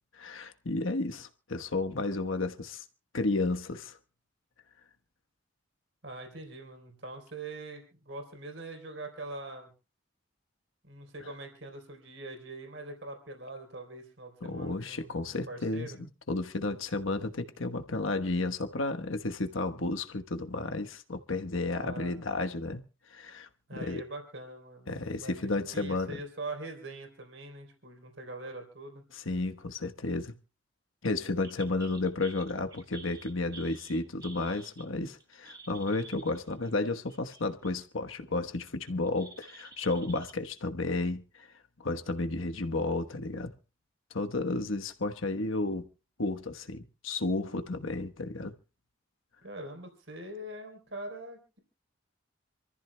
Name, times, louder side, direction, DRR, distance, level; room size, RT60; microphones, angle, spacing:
voice 1, 0.1-2.8 3.1-4.0 11.2-11.3 14.4-22.8 23.1-24.0 24.9-26.2 29.1-30.3 31.0-41.5 41.8-43.5 44.1-45.9 46.2-48.5, left 2 dB, 85° left, 1.2 m, -32 dB
voice 2, 6.0-9.7 10.8-15.1 15.5-16.0 21.7-22.1 23.7-29.1 49.4-51.6, right 2 dB, 70° right, 3.7 m, -43 dB
sound 1, 31.4-37.8 38.2-40.3, right 4 dB, 20° right, 1.3 m, -51 dB
27.5 x 14.0 x 2.3 m
head